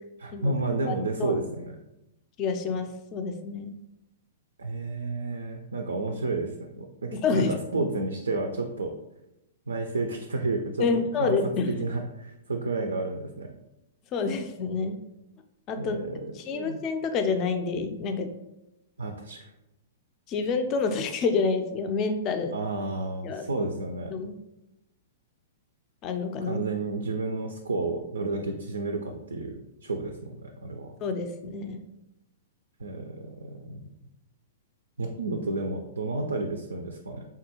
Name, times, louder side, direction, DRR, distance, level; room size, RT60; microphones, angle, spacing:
voice 1, 0.2-1.8 4.6-8.9 9.7-11.4 11.8-13.5 15.8-16.3 16.5-16.8 19.0-19.5 22.5-24.1 26.5-29.5 29.8-30.9 32.8-33.8 35.0-37.2, right 3 dB, 75° right, 4 dB, 0.3 m, -31 dB
voice 2, 2.4-3.7 7.1-7.6 10.8-11.7 14.1-15.0 15.7-16.0 16.4-18.3 20.3-22.5 23.2-23.7 24.1-24.3 26.0-26.6 31.0-31.8, left 4 dB, 35° left, 6 dB, 0.4 m, -28 dB
3.5 x 2.3 x 2.8 m, 0.90 s
figure-of-eight pair, 110°, 0 cm